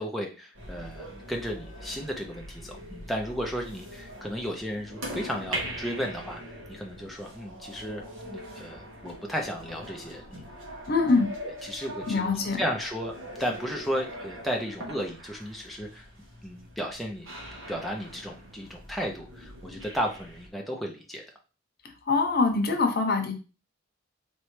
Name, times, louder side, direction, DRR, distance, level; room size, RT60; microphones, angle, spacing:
voice 1, 0.0-10.4 11.4-16.1 16.4-17.3 17.7-21.2, equal, ahead, -1 dB, 0.5 m, -34 dB
sound 1, 0.5-20.5, equal, 85° right, 1.5 m, -42 dB
voice 2, 10.9-11.3 12.1-12.6 22.1-23.3, left 3 dB, 50° left, 4 dB, 0.8 m, -24 dB
4.4 x 3.0 x 3.2 m, 0.34 s
head